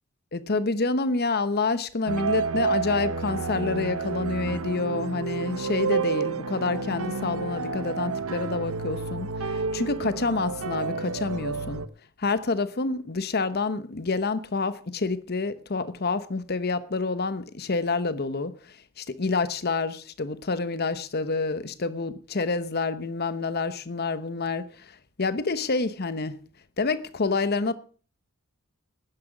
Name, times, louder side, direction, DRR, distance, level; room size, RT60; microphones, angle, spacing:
voice 1, 0.3-11.8 12.2-18.5 19.0-24.9 25.2-26.4 26.8-27.7, left 3 dB, 45° left, 0.9 m, -28 dB
sound 1, 2.1-11.9, right 4 dB, 80° right, 0.8 m, -30 dB
11.5 x 10.0 x 6.0 m
head